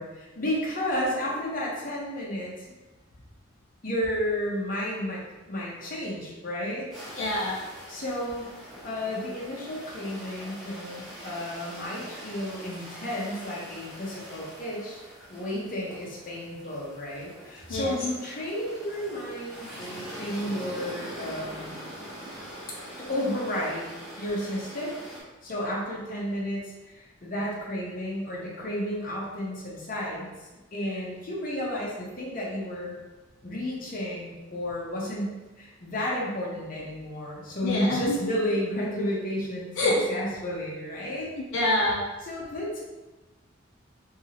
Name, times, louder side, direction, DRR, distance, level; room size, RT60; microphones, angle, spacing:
voice 1, 0.0-2.7 3.8-6.9 7.9-8.5 8.8-15.0 15.3-21.8 22.7-25.0 25.4-30.3 30.7-33.0 33.4-41.3 42.3-42.8, left 1 dB, 45° left, -4 dB, 0.8 m, -32 dB
sound 1, 6.9-25.2, equal, ahead, 0.8 m, -43 dB
voice 2, 7.2-7.6 17.7-18.0 37.6-38.2 39.8-40.0 41.3-42.0, left 1 dB, 80° left, -4 dB, 0.5 m, -26 dB
2.8 x 2.7 x 2.9 m, 1.1 s
head